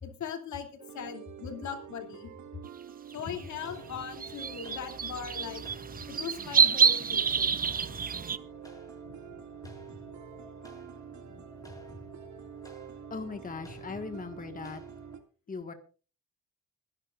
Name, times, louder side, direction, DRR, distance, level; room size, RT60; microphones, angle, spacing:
voice 1, 0.0-0.7 0.9-2.3 3.1-5.6 6.1-7.6 9.0-9.4 11.3-11.4, left 7 dB, 70° left, 5 dB, 2.7 m, -40 dB
sound 1, 0.8-15.2, right 9 dB, 70° right, 2.4 m, -47 dB
sound 2, 3.2-15.2, left 1 dB, 10° left, 6.2 m, -52 dB
sound 3, 3.4-3.5 4.2-8.4, right 6 dB, 30° right, 0.7 m, -27 dB
voice 2, 13.1-14.8 15.5-15.7, left 4 dB, 30° left, 6 dB, 1.6 m, -39 dB
25.0 x 11.0 x 2.5 m, 0.35 s
cardioid pair, 90°, 30 cm